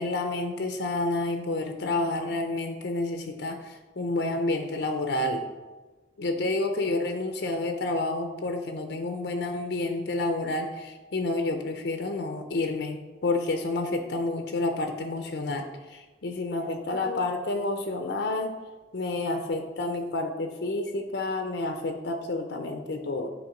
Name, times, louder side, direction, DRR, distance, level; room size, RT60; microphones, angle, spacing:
voice 1, 0.0-5.5 6.2-18.5 18.9-23.3, left 2 dB, 75° left, 5 dB, 0.6 m, -29 dB
8.2 x 3.1 x 5.0 m, 1.3 s
head